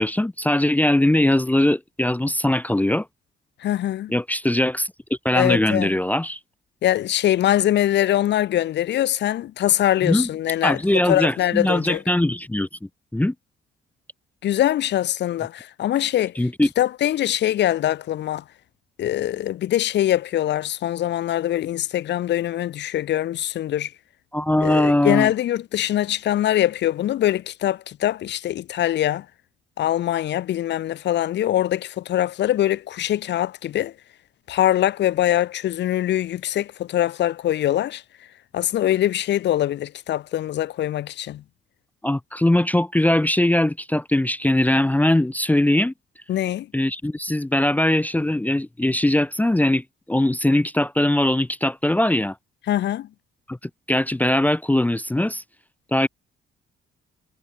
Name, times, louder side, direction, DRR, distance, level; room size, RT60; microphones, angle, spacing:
voice 1, 0.0-3.1 4.1-4.9 5.2-6.4 10.0-10.3 10.6-12.7 13.1-13.3 16.4-16.7 24.3-25.3 42.0-45.9 46.7-52.4 53.5-53.6 53.9-55.4 55.9-56.1, left 1 dB, 10° left, 0.7 m, -20 dB
voice 2, 3.6-4.1 5.3-5.9 6.8-12.0 14.4-16.3 16.8-18.4 19.0-23.9 24.6-29.3 29.8-33.9 34.5-38.0 38.5-41.4 46.3-46.7 52.7-53.1, left 12 dB, 60° left, 0.6 m, -23 dB
cardioid pair, 90°, 20 cm